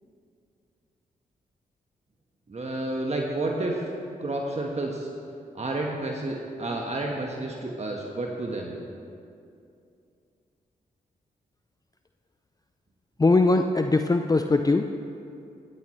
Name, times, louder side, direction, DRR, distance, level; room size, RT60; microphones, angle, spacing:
voice 1, 2.5-3.9 4.2-5.1 5.5-8.7, right 2 dB, 40° right, 0 dB, 1.4 m, -30 dB
voice 2, 13.2-14.9, left 3 dB, 20° left, 7 dB, 0.6 m, -21 dB
14.0 x 14.0 x 3.3 m, 2.5 s
supercardioid pair, 45°, 17 cm